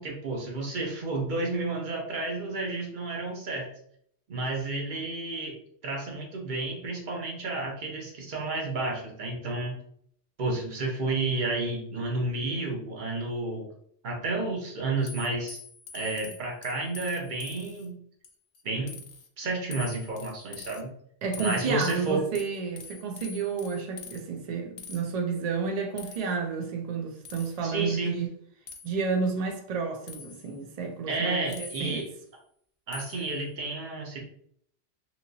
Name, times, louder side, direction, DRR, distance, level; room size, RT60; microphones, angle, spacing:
voice 1, 0.0-3.7 4.3-5.5 5.8-9.8 10.4-13.7 14.0-15.6 15.9-18.0 18.6-19.0 19.4-20.9 21.4-22.2 27.6-28.2 31.1-32.1 32.9-34.2, right 2 dB, 45° right, 0.8 m, -31 dB
sound 1, 15.1-17.9 18.2-18.6 18.9-19.3 19.7-20.8 21.3-24.2 24.8-25.0 26.0-26.4 27.2-27.6 28.7-28.9 30.1-30.5 31.5-32.1 32.9-33.3, left 4 dB, 70° left, 0.8 m, -44 dB
voice 2, 21.2-28.3 28.8-32.1, right 5 dB, 65° right, 0.4 m, -31 dB
3.0 x 2.8 x 2.6 m
omnidirectional pair, 1.2 m